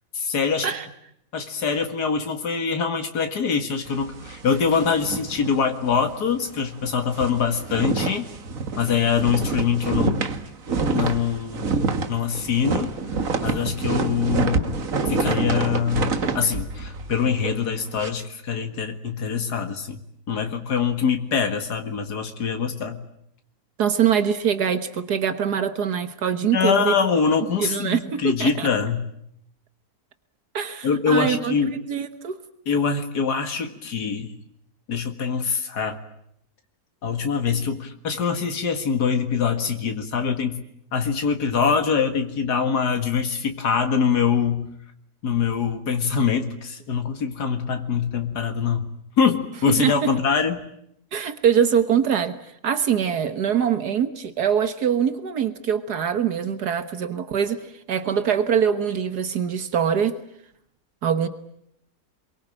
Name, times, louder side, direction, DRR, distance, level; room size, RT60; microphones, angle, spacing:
voice 1, 0.1-0.7 1.3-8.3 8.8-10.2 10.9-11.8 12.1-12.9 13.4-14.8 15.1-20.0 20.3-23.0 26.5-29.1 30.8-31.8 32.7-34.3 34.9-36.0 37.0-40.6 40.9-44.7 45.2-48.9 49.2-50.7, left 6 dB, 85° left, 2.4 m, -24 dB
sound 1, 3.8-6.1 6.4-6.6 6.9-18.1, right 4 dB, 55° right, 1.9 m, -27 dB
voice 2, 23.8-26.9 27.6-28.7 30.5-31.6 31.9-32.4 49.8-50.1 51.1-52.4 52.6-57.6 57.9-60.2 61.0-61.3, right 8 dB, 80° right, 1.9 m, -23 dB
28.5 x 23.0 x 8.9 m
omnidirectional pair, 1.7 m